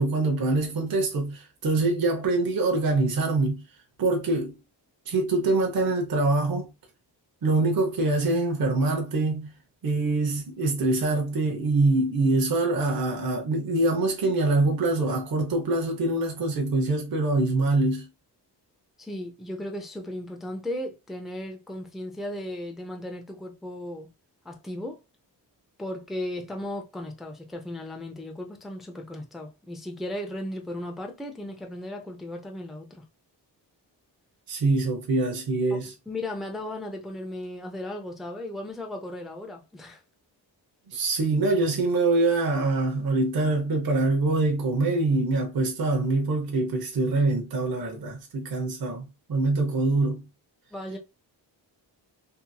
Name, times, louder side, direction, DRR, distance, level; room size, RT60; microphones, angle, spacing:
voice 1, 0.0-3.6 4.0-4.5 5.1-6.7 7.4-9.5 9.8-18.1 34.5-35.9 40.9-50.2, right 2 dB, 55° right, 0.8 m, -24 dB
voice 2, 19.0-24.1 24.4-25.0 25.8-33.1 35.7-40.0 50.7-51.0, left 1 dB, ahead, 0.4 m, -36 dB
2.8 x 2.6 x 2.2 m
cardioid pair, 90°, 43 cm